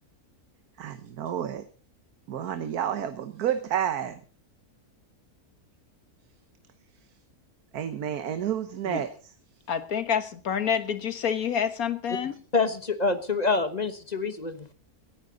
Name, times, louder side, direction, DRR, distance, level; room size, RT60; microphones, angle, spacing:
voice 1, 0.8-1.6 2.3-4.2 7.7-9.1, right 9 dB, 85° right, 10 dB, 1.5 m, -30 dB
voice 2, 9.7-12.3, left 7 dB, 70° left, 11 dB, 1.8 m, -28 dB
voice 3, 12.5-14.7, left 4 dB, 30° left, 11 dB, 1.2 m, -26 dB
18.0 x 14.5 x 3.9 m, 0.38 s
omnidirectional pair, 1.6 m